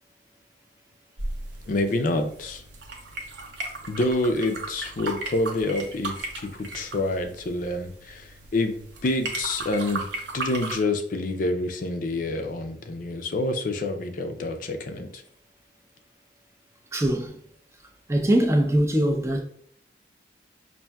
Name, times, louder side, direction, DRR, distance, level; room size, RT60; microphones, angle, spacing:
sound 1, 1.2-10.8, right 2 dB, 75° right, 0.7 m, -36 dB
voice 1, 1.7-2.6 3.9-10.1 10.3-15.2, left 2 dB, 50° left, 0.4 m, -27 dB
voice 2, 16.9-17.4 18.1-19.4, right 1 dB, 15° right, 0.4 m, -22 dB
5.4 x 2.6 x 2.3 m
head